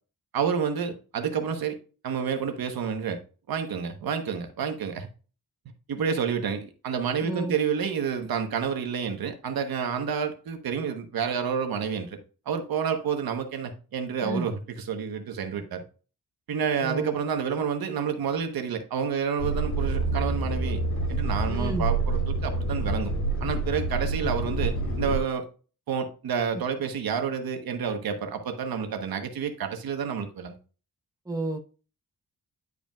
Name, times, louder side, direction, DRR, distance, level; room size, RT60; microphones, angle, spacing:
voice 1, 0.3-1.8 2.0-3.2 3.5-5.1 5.6-12.2 12.5-15.8 16.5-20.8 21.1-23.1 23.4-25.5 25.9-30.6, right 7 dB, 85° right, 1.2 m, -29 dB
voice 2, 7.2-7.5 14.2-14.4 16.8-17.1 21.5-21.9 31.3-31.6, right 2 dB, 10° right, 1.0 m, -31 dB
sound 1, 19.4-25.2, right 2 dB, 50° left, 2.7 m, -27 dB
10.5 x 5.0 x 2.4 m
wide cardioid pair, 125°, 35 cm